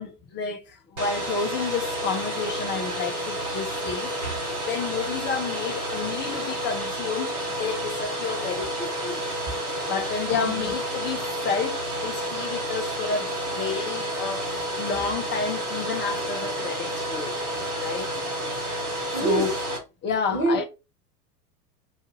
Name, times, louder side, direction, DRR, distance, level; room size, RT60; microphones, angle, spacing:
voice 1, 0.0-4.1 4.5-9.2 9.9-14.5 14.8-17.4 17.8-18.1 19.2-19.5 20.0-20.7, left 5 dB, 25° left, 0.8 m, -30 dB
Domestic sounds home sounds, 1.0-19.8, right 1 dB, 70° right, 1.6 m, -30 dB
voice 2, 10.3-10.7 19.1-19.5 20.3-20.7, right 3 dB, 30° right, 1.8 m, -26 dB
5.8 x 2.6 x 2.6 m
figure-of-eight pair, 85°, 46 cm